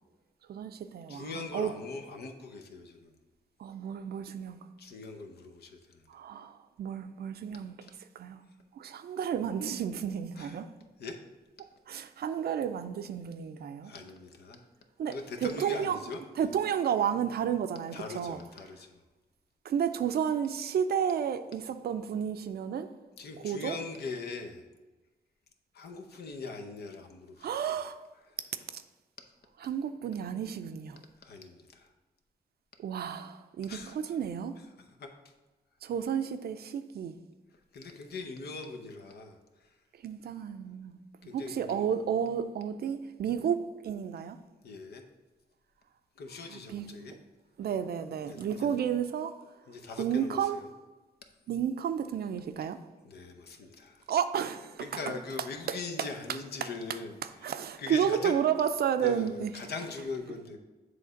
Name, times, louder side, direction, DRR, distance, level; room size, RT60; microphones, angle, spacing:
voice 1, 0.5-1.7 3.6-4.6 6.1-7.8 8.2-8.4 8.8-10.7 11.9-13.9 15.0-15.1 15.4-16.0 16.4-18.4 19.6-22.9 23.4-23.8 27.4-28.0 28.7-28.8 29.6-31.0 32.8-34.5 35.8-37.2 40.0-41.0 41.3-44.4 46.5-46.9 47.6-49.3 50.0-50.6 51.5-52.8 54.1-54.9 57.4-59.5, right 8 dB, 75° right, 0.5 m, -31 dB
voice 2, 1.1-3.2 4.8-6.1 7.8-7.9 10.4-10.6 11.0-11.2 13.8-14.7 15.1-16.5 17.9-19.0 23.2-24.7 25.7-27.7 31.2-31.9 33.7-34.2 34.6-35.3 37.5-39.8 41.2-41.9 44.6-45.0 46.2-47.1 48.2-48.7 49.7-50.7 53.0-54.1 54.8-58.4 59.0-60.6, left 4 dB, 80° left, 0.8 m, -41 dB
7.7 x 3.3 x 5.1 m
cardioid pair, 70°, 16 cm